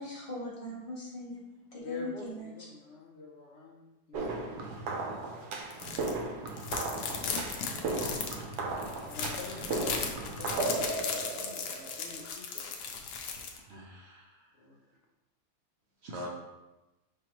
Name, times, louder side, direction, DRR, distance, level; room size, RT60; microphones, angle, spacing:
voice 1, 0.0-1.4 1.7-2.5, left 1 dB, 25° left, -6 dB, 1.3 m, -40 dB
voice 2, 1.8-4.9 9.0-12.7 14.6-14.8, left 4 dB, 60° left, -1 dB, 0.7 m, -46 dB
sound 1, 4.1-12.3, right 3 dB, 80° right, 1.2 m, -36 dB
sound 2, 5.7-6.1 6.5-13.6, left 5 dB, 85° left, 1.2 m, -37 dB
voice 3, 13.5-14.5 16.0-16.3, equal, 55° right, -2 dB, 0.7 m, -44 dB
5.0 x 3.5 x 3.0 m, 1.0 s
omnidirectional pair, 1.7 m